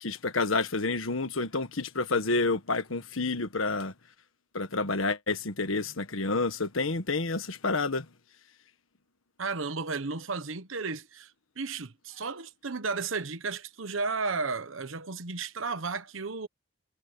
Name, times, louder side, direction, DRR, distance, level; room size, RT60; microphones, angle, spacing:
voice 1, 0.0-3.9 4.5-8.0, left 3 dB, 85° left, 1.5 m, -29 dB
voice 2, 9.4-11.3 11.6-16.5, right 4 dB, 75° right, 1.2 m, -33 dB
head